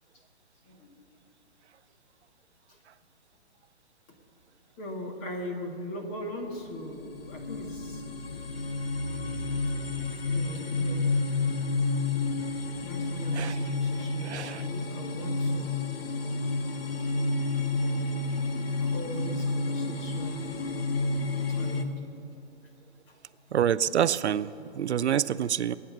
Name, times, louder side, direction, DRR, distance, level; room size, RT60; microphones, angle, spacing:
voice 1, 0.7-1.0 4.8-8.0 10.3-11.1 12.8-15.9 18.8-20.5 21.6-21.9, left 1 dB, 20° left, 2 dB, 1.7 m, -40 dB
sound 1, 6.6-21.8, left 3 dB, 60° left, 1.3 m, -30 dB
voice 2, 14.2-14.6 23.5-24.5 24.8-25.7, right 9 dB, 80° right, 16 dB, 0.6 m, -26 dB
20.5 x 9.5 x 7.3 m, 2.7 s
hypercardioid pair, 160°, 34 cm